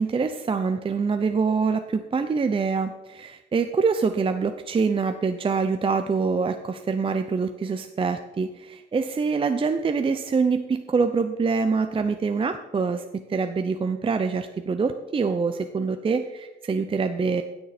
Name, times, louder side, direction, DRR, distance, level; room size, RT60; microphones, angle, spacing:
voice 1, 0.0-17.4, right 5 dB, 25° right, 8 dB, 0.6 m, -25 dB
16.5 x 6.6 x 4.3 m, 1.1 s
cardioid pair, 90°, 20 cm